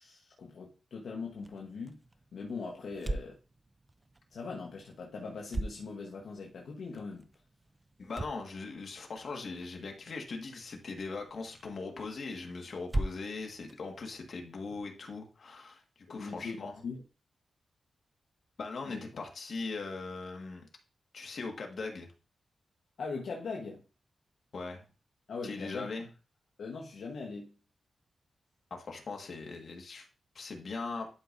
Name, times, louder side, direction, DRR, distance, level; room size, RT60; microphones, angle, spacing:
voice 1, 0.0-2.0 2.3-3.4 4.3-7.3 16.1-17.0 18.8-19.0 23.0-23.8 25.3-25.9 26.6-27.5, left 4 dB, 75° left, 1.2 m, -41 dB
sound 1, 1.3-14.9, right 2 dB, 20° right, 0.4 m, -43 dB
voice 2, 8.0-15.8 16.1-16.8 18.6-20.6 21.1-22.1 24.5-24.8 25.4-26.1 28.7-30.1 30.4-31.1, left 3 dB, 60° left, 1.7 m, -40 dB
11.5 x 5.0 x 2.6 m
wide cardioid pair, 130°, 0 cm